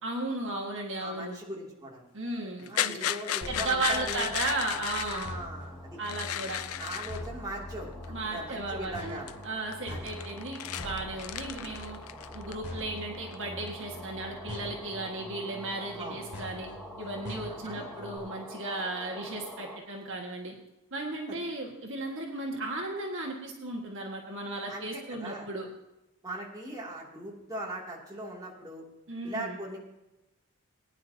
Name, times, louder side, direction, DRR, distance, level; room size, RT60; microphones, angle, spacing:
voice 1, 0.0-1.4 2.1-3.1 3.5-5.3 6.0-6.6 8.1-12.0 12.3-16.7 17.0-20.5 20.9-25.7 29.1-29.6, right 2 dB, 60° right, 0 dB, 1.8 m, -35 dB
voice 2, 1.0-2.1 2.7-4.3 5.1-6.0 6.8-9.3 9.9-10.1 16.0-16.2 17.6-17.9 24.7-25.5 26.2-28.8 29.2-29.8, right 1 dB, 15° right, -4 dB, 2.8 m, -39 dB
sound 1, 2.6-5.3 6.0-7.3 8.0-8.1 8.6-9.0 9.3-9.4 9.7-12.8 13.1-13.8, left 11 dB, 70° left, 0.5 m, -35 dB
sound 2, 3.4-18.2, left 1 dB, 55° left, 2.9 m, -44 dB
sound 3, 3.4-19.8, left 1 dB, 5° left, 1.8 m, -48 dB
20.0 x 10.0 x 2.9 m, 0.98 s
head